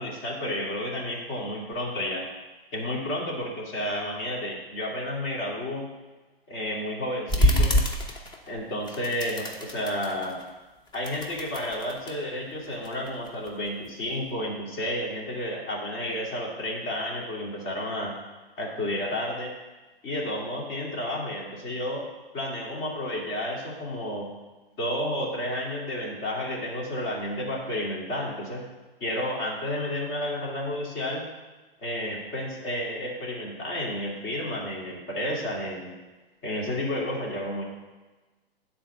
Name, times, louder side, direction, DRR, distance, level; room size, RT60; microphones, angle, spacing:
voice 1, 0.0-2.2 2.7-5.9 6.5-7.8 8.4-10.4 10.9-18.1 18.6-19.5 20.0-22.1 22.3-24.3 24.8-28.6 29.0-31.3 31.8-36.0 36.4-37.6, left 1 dB, 35° left, -3 dB, 2.9 m, -31 dB
sound 1, 7.3-8.6 8.9-10.5 10.9-12.2 12.7-13.9, equal, 15° left, 0.9 m, -26 dB
8.9 x 4.4 x 6.9 m, 1.2 s
figure-of-eight pair, 115°, 30 cm